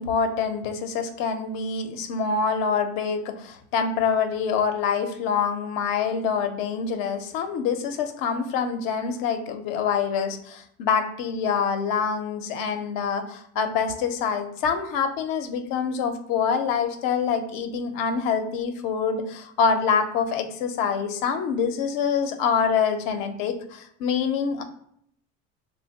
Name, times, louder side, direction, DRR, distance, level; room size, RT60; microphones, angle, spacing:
voice 1, 0.0-24.6, left 6 dB, 70° left, 7 dB, 0.7 m, -26 dB
3.3 x 2.2 x 4.0 m, 0.69 s
hypercardioid pair, 70°, 35 cm